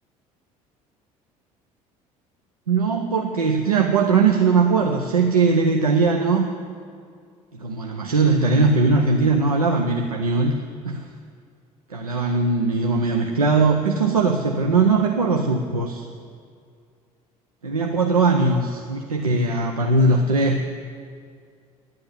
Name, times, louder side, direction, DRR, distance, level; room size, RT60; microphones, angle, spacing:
voice 1, 2.7-6.5 7.5-10.5 10.8-11.1 11.9-16.1 17.6-20.6, right 4 dB, 90° right, 3 dB, 0.6 m, -20 dB
10.5 x 7.7 x 9.7 m, 2.2 s
figure-of-eight pair, 60°, 18 cm